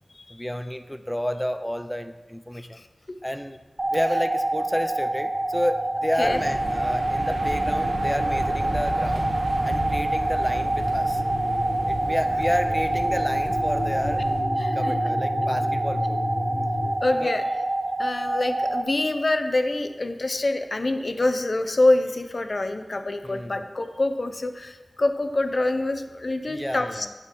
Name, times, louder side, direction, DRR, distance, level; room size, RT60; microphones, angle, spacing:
voice 1, 0.3-2.8 3.2-3.6 3.9-9.3 9.6-11.2 11.9-14.2 14.7-16.2 17.2-17.3 23.2-23.6 26.5-27.1, equal, 5° left, 9 dB, 0.4 m, -30 dB
sound 1, 3.8-18.8, right 1 dB, 40° right, 0.6 m, -26 dB
sound 2, 5.1-16.9, left 1 dB, 35° left, 1.2 m, -34 dB
sound 3, 6.2-14.4, right 1 dB, 70° right, 1.4 m, -33 dB
voice 2, 14.6-14.9 17.0-17.5 18.0-27.1, left 2 dB, 50° left, 8 dB, 0.7 m, -25 dB
8.1 x 7.0 x 4.5 m, 1.3 s
wide cardioid pair, 70°, 0 cm